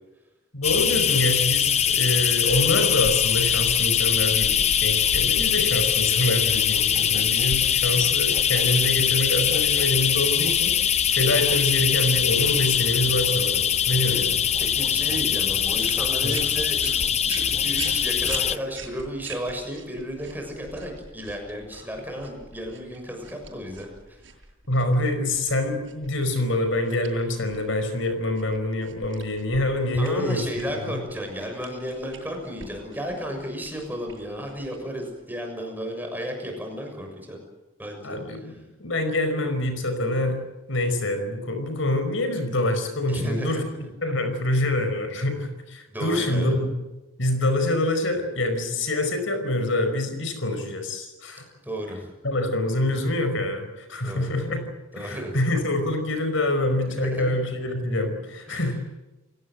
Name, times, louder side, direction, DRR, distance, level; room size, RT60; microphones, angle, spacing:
voice 1, 0.5-10.8 11.1-14.4 16.2-16.3 24.7-30.5 30.8-31.0 38.0-40.4 40.7-43.6 44.0-46.7 47.2-51.4 52.2-54.7 55.0-58.8, left 1 dB, 70° left, 8 dB, 5.2 m, -26 dB
sound 1, 0.6-18.6, left 9 dB, 35° left, 0.8 m, -22 dB
voice 2, 14.6-23.9 29.9-37.4 37.8-38.2 38.5-38.6 43.1-43.9 45.9-46.5 51.6-52.1 54.0-54.3 54.9-55.4 57.0-57.4 58.5-58.7, equal, 10° right, 3 dB, 6.7 m, -33 dB
sound 2, 15.7-35.3, right 6 dB, 65° right, 6.9 m, -44 dB
29.5 x 17.5 x 7.7 m, 1.0 s
head